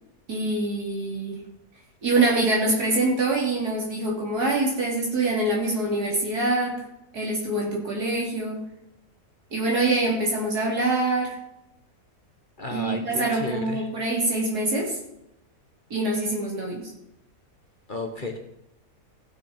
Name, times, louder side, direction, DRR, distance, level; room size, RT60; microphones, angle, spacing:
voice 1, 0.3-1.4 2.0-6.8 7.1-8.6 9.5-11.4 12.7-15.0 15.9-16.9, right 2 dB, 80° right, -2 dB, 3.8 m, -25 dB
voice 2, 12.6-13.9 17.9-18.4, left 2 dB, 35° left, 4 dB, 1.4 m, -33 dB
16.0 x 6.5 x 5.2 m, 0.84 s
omnidirectional pair, 1.7 m